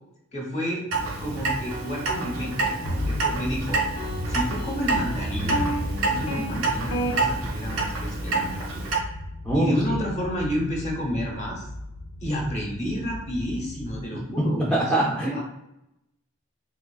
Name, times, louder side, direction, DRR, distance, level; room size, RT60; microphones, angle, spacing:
voice 1, 0.3-0.8 1.2-3.8 4.3-5.7 6.1-8.8 9.5-11.7 12.2-15.4, equal, 30° left, 0 dB, 0.8 m, -30 dB
Clock, 0.9-9.0, right 3 dB, 90° right, 0.6 m, -28 dB
sound 1, 1.7-3.2 4.0-6.4 6.9-7.1, equal, 90° left, 0.8 m, -33 dB
sound 2, 2.8-14.0, left 1 dB, 65° left, 0.4 m, -36 dB
voice 2, 9.4-10.2 14.7-15.4, right 1 dB, 5° left, -5 dB, 0.4 m, -24 dB
3.5 x 3.2 x 2.2 m, 0.87 s
head